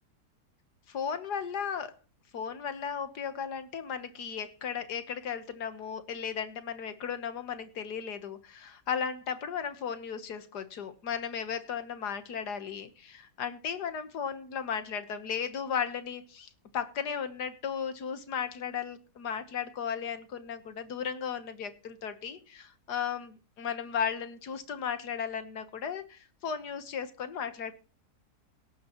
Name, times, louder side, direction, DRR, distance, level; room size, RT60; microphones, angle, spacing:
voice 1, 0.9-1.9 2.3-27.7, left 7 dB, 75° left, 10 dB, 1.8 m, -35 dB
17.5 x 9.2 x 3.0 m, 0.36 s
omnidirectional pair, 1.7 m